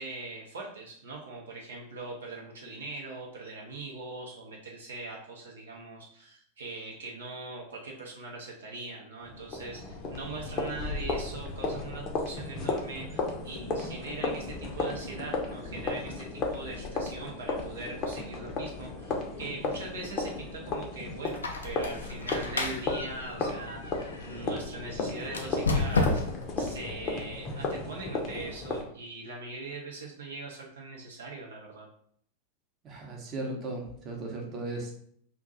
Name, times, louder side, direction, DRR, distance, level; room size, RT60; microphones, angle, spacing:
voice 1, 0.0-31.9, right 3 dB, 65° right, -2 dB, 0.6 m, -41 dB
sound 1, 9.2-28.8, left 3 dB, 30° left, 0.6 m, -34 dB
Squeak, 21.3-24.5 25.3-26.5, left 3 dB, 70° left, 0.4 m, -31 dB
voice 2, 32.8-34.9, right 2 dB, 30° right, 0 dB, 0.8 m, -36 dB
2.6 x 2.2 x 3.8 m, 0.63 s
figure-of-eight pair, 90°, 0 cm